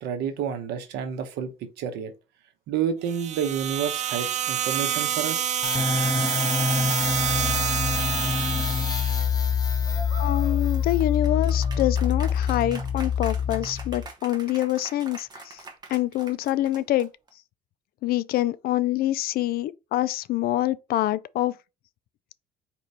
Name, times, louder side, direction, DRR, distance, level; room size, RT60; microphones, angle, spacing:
voice 1, 0.0-2.1 2.7-5.6, right 8 dB, 85° right, 0.9 m, -30 dB
sound 1, 3.1-9.2, right 10 dB, 45° right, 0.4 m, -28 dB
sound 2, 5.6-14.1, left 6 dB, 20° left, 0.9 m, -25 dB
sound 3, 9.9-17.3, right 2 dB, 25° right, 1.1 m, -43 dB
voice 2, 10.2-15.6 15.9-17.1 18.0-21.6, left 14 dB, 65° left, 0.4 m, -26 dB
4.4 x 3.0 x 4.0 m
cardioid pair, 110°, 17 cm